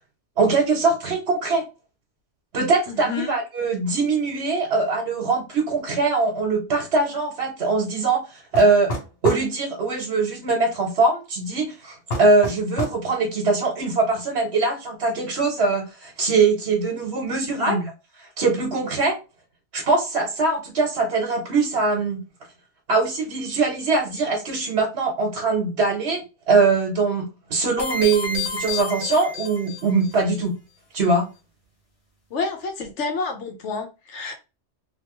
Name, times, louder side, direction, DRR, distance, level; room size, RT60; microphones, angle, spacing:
voice 1, 0.4-1.6 2.5-8.9 9.2-17.7 18.4-19.2 19.7-22.2 22.9-27.2 27.5-30.5 30.9-31.3, right 3 dB, 65° right, 1 dB, 1.1 m, -22 dB
voice 2, 2.9-3.3 16.9-17.0 17.6-17.9 32.3-34.4, left 3 dB, 85° left, 4 dB, 1.2 m, -29 dB
sound 1, 8.5-9.5 12.1-13.0, equal, 65° left, 1.0 m, -28 dB
sound 2, 27.8-30.1, left 4 dB, 35° left, 1.0 m, -30 dB
2.9 x 2.6 x 2.9 m, 0.28 s
omnidirectional pair, 1.2 m